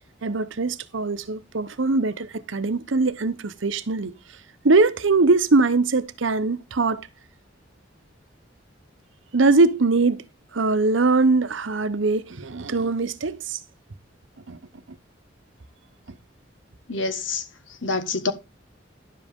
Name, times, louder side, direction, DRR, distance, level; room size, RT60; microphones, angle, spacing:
voice 1, 0.2-4.1 4.6-7.1 9.3-10.2 10.5-13.6 14.5-14.6, right 3 dB, 80° right, 0.8 m, -21 dB
voice 2, 16.9-18.3, left 3 dB, 80° left, 1.4 m, -27 dB
11.0 x 7.6 x 3.6 m
head